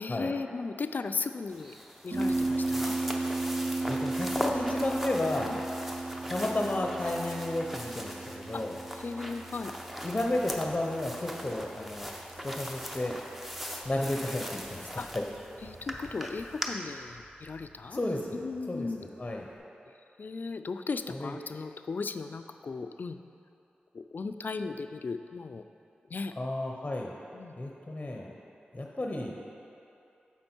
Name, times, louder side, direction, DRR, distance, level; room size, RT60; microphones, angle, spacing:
voice 1, 0.0-1.8 2.0-3.0 5.4-5.6 8.5-8.6 9.0-9.7 15.0-15.1 15.6-18.0 18.3-19.0 20.2-23.2 23.9-25.6 26.1-26.3 27.3-27.5, left 4 dB, 60° left, 9 dB, 0.3 m, -36 dB
sound 1, 1.5-16.7, equal, 5° right, 0.7 m, -39 dB
Harp, 2.1-19.6, right 2 dB, 80° right, 1.2 m, -37 dB
voice 2, 3.9-5.5 6.3-8.8 10.0-12.1 12.4-13.2 13.8-15.2 17.9-18.4 18.7-19.5 21.1-21.3 26.4-27.1 27.6-28.3 28.7-29.3, left 1 dB, 30° left, 0 dB, 0.7 m, -32 dB
7.1 x 5.3 x 4.5 m, 2.6 s
cardioid pair, 50°, 4 cm